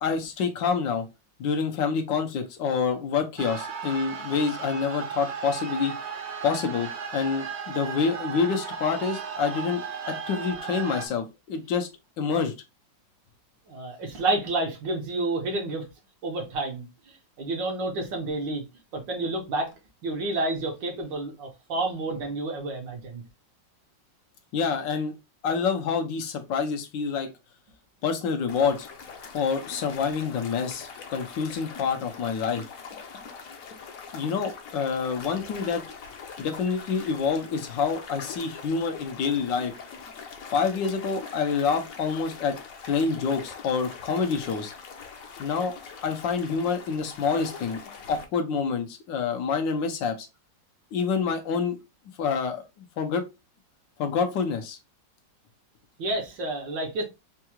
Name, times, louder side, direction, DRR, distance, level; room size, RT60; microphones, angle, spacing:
voice 1, 0.0-1.1 1.4-5.9 6.4-11.9 12.2-12.5 24.5-25.1 25.4-27.3 28.0-28.9 29.3-32.7 34.1-35.8 36.4-39.7 40.5-42.6 42.9-44.7 45.4-45.7 46.0-47.8 48.1-50.3 50.9-51.8 52.2-53.2 54.0-54.8, left 5 dB, 80° left, 1.5 m, -27 dB
sound 1, 3.4-11.1, right 6 dB, 55° right, 0.7 m, -35 dB
voice 2, 13.7-15.9 16.2-18.6 18.9-19.7 20.0-23.2 56.0-57.0, right 2 dB, 85° right, 1.8 m, -30 dB
sound 2, 28.5-48.3, left 5 dB, 60° left, 1.0 m, -43 dB
4.6 x 2.3 x 3.0 m
omnidirectional pair, 1.9 m